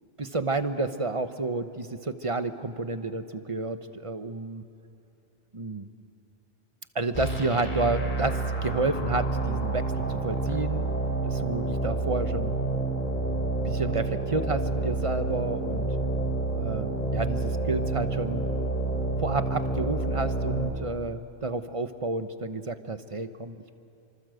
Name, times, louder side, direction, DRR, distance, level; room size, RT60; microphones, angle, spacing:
voice 1, 0.2-4.6 5.5-5.9 6.9-10.9 11.2-12.5 13.6-15.9 16.5-18.5 19.2-23.7, right 3 dB, 35° right, 10 dB, 1.0 m, -30 dB
sound 1, 7.1-20.7, right 3 dB, 50° left, 3.0 m, -29 dB
29.5 x 25.0 x 7.8 m, 2.9 s
omnidirectional pair, 1.1 m